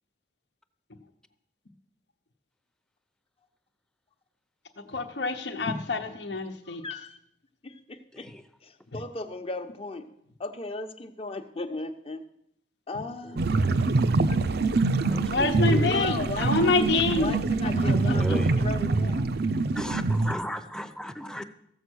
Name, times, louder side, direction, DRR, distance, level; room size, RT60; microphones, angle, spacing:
voice 1, 4.9-6.8 15.3-17.3 17.6-18.4, left 3 dB, 70° left, 1.0 m, -27 dB
voice 2, 6.7-7.2 7.6-8.3 8.6-10.1 10.4-12.2 12.9-13.5 15.8-16.9 17.2-19.3, left 3 dB, 35° left, 0.9 m, -36 dB
voice 3, 8.1-8.4 13.2-13.4 15.0-15.9 18.1-18.5 19.7-21.5, left 1 dB, 5° left, 0.7 m, -36 dB
sound 1, 13.4-20.3, right 3 dB, 60° right, 0.6 m, -25 dB
15.0 x 7.6 x 6.3 m
head